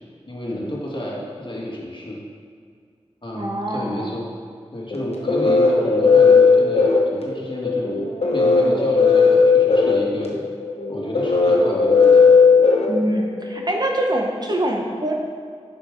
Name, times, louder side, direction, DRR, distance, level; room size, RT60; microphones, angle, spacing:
voice 1, 0.3-2.2 3.2-4.3 4.7-10.4 10.9-12.3, left 1 dB, 45° left, -3 dB, 1.7 m, -31 dB
voice 2, 3.3-4.1 12.9-15.1, right 1 dB, 35° right, 0 dB, 1.0 m, -24 dB
sound 1, 4.9-13.6, left 4 dB, 65° left, 1.0 m, -16 dB
6.6 x 5.3 x 5.1 m, 2.1 s
wide cardioid pair, 45°, 11 cm